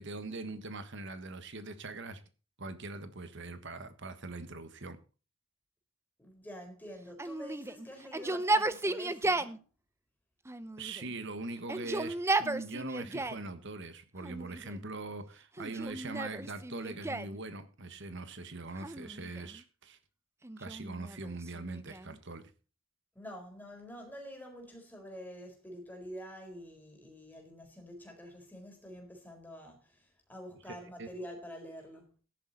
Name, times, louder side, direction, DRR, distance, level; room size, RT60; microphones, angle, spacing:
voice 1, 0.0-2.2 2.6-5.0 10.8-20.0 20.6-22.4 31.0-31.1, right 3 dB, 60° right, 1.5 m, -42 dB
voice 2, 6.2-9.6 23.1-32.1, equal, 10° left, 4.0 m, -47 dB
Yell, 7.2-9.6 10.5-11.2 11.6-13.5 14.2-14.9 15.6-17.4 18.7-19.6 20.4-22.2, right 2 dB, 15° right, 0.6 m, -34 dB
13.5 x 11.0 x 4.1 m
head